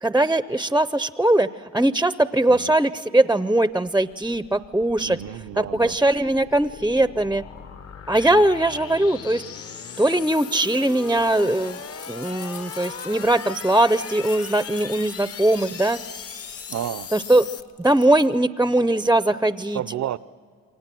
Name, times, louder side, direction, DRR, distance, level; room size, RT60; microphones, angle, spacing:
voice 1, 0.0-5.2 5.6-7.4 8.1-9.4 10.0-16.2 17.1-17.4 17.8-19.8, right 1 dB, 5° right, 0.5 m, -20 dB
sound 1, 4.0-17.6, left 6 dB, 50° left, 1.0 m, -38 dB
voice 2, 5.0-6.0 16.7-17.1 19.7-20.2, right 11 dB, 65° right, 0.6 m, -31 dB
sound 2, 7.5-18.4, left 7 dB, 70° left, 1.6 m, -49 dB
28.5 x 24.0 x 7.6 m
cardioid pair, 90°, 30 cm